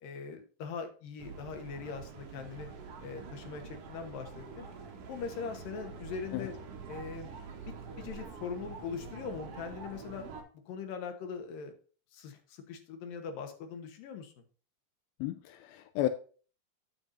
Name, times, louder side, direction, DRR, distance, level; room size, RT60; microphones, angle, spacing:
voice 1, 0.0-2.7 3.0-4.7 5.1-6.5 6.9-7.3 8.0-10.2 10.7-11.7 12.1-14.3, left 6 dB, 65° left, 2.7 m, -41 dB
sound 1, 1.2-10.4, right 5 dB, 60° right, 1.6 m, -46 dB
voice 2, 15.2-16.1, left 13 dB, 85° left, 2.2 m, -33 dB
9.6 x 8.0 x 2.6 m
omnidirectional pair, 4.7 m